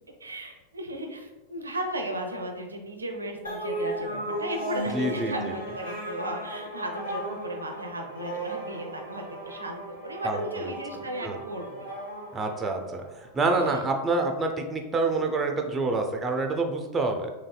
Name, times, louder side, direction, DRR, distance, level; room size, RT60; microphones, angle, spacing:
voice 1, 0.2-11.9 13.7-13.8, right 1 dB, 80° right, 4 dB, 0.4 m, -35 dB
sound 1, 3.4-13.2, right 1 dB, 80° left, 1.1 m, -36 dB
voice 2, 4.9-5.5 10.2-10.7 11.2-11.4 12.3-17.3, right 3 dB, 15° right, 3 dB, 0.4 m, -27 dB
4.0 x 3.1 x 2.2 m, 1.1 s
figure-of-eight pair, 90°, 0 cm